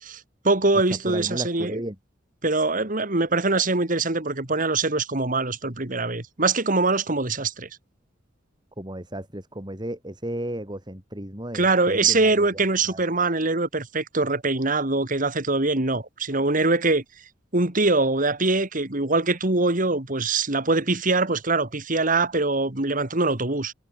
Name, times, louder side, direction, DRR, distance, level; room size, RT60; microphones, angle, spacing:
voice 1, 0.0-1.8 2.4-7.7 11.5-17.0 17.5-23.7, right 3 dB, 45° right, 2.6 m, -23 dB
voice 2, 1.1-2.0 8.8-13.0, right 1 dB, 25° right, 5.2 m, -34 dB
head